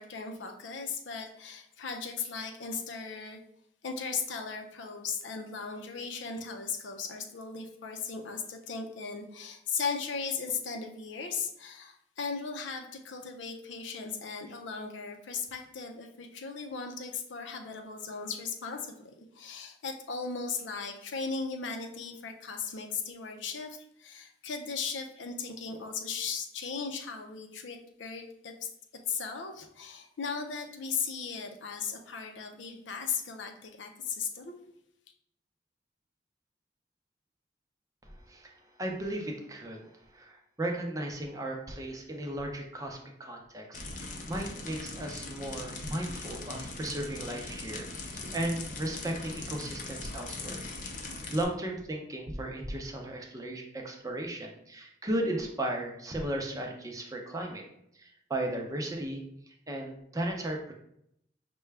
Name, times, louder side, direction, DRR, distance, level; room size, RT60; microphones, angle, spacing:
voice 1, 0.0-3.4 3.8-28.7 29.1-34.5, left 5 dB, 85° left, 4 dB, 0.6 m, -37 dB
voice 2, 38.8-39.9 40.1-50.6 51.3-57.6 57.9-59.2 59.7-60.7, right 1 dB, 20° right, 1 dB, 0.5 m, -35 dB
sound 1, 43.7-51.4, left 3 dB, 45° left, 0.5 m, -41 dB
5.7 x 2.2 x 3.3 m, 0.76 s
head